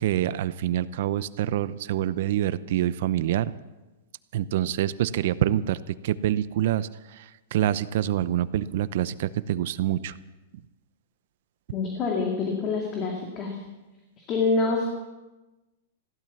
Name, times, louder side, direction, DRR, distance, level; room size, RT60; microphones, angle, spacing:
voice 1, 0.0-3.5 4.3-6.9 7.2-7.3 7.5-10.1, right 12 dB, 60° right, 16 dB, 0.7 m, -26 dB
voice 2, 11.7-13.6 14.3-14.8, left 4 dB, 30° left, 1 dB, 2.2 m, -26 dB
16.0 x 12.0 x 7.2 m, 1.1 s
hypercardioid pair, 155°, 0 cm